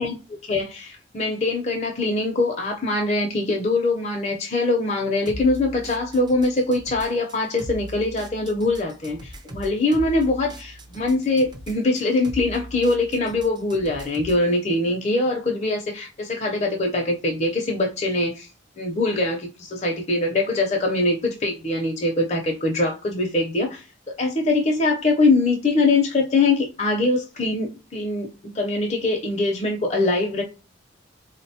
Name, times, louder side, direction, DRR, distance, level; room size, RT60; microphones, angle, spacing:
voice 1, 0.5-18.5 18.8-30.4, left 2 dB, 35° left, 0.5 m, -23 dB
sound 1, 5.3-14.5, equal, 25° right, 0.4 m, -39 dB
3.8 x 2.1 x 2.7 m
head